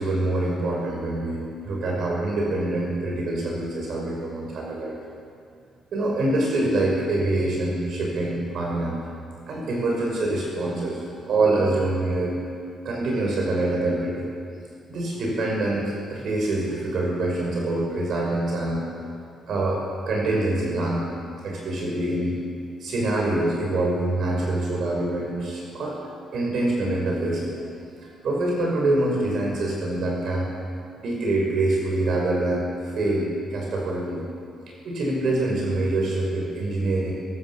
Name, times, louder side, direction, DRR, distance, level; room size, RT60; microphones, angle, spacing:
voice 1, 0.0-4.9 5.9-9.0 9.5-11.0 11.3-12.4 12.8-14.3 14.9-19.1 19.5-21.1 21.4-22.4 22.8-26.0 26.3-27.7 28.0-30.5 31.0-34.2 34.8-37.1, right 2 dB, 65° right, -1 dB, 5.6 m, -25 dB
22.0 x 17.0 x 7.1 m, 2.3 s
cardioid pair, 90°, 0 cm